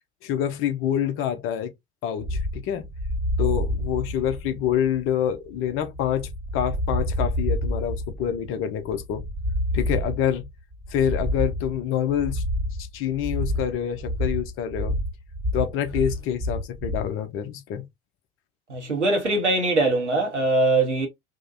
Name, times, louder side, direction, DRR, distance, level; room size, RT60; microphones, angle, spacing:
voice 1, 0.2-1.7 2.0-2.9 3.4-9.2 9.7-10.4 10.9-12.4 12.9-15.0 15.5-17.8, left 9 dB, 40° left, 0.6 m, -26 dB
sound 1, 2.2-17.1, left 1 dB, 15° right, 0.5 m, -28 dB
voice 2, 18.7-21.1, right 2 dB, 85° right, 0.9 m, -22 dB
2.6 x 2.1 x 2.5 m
figure-of-eight pair, 65°, 35 cm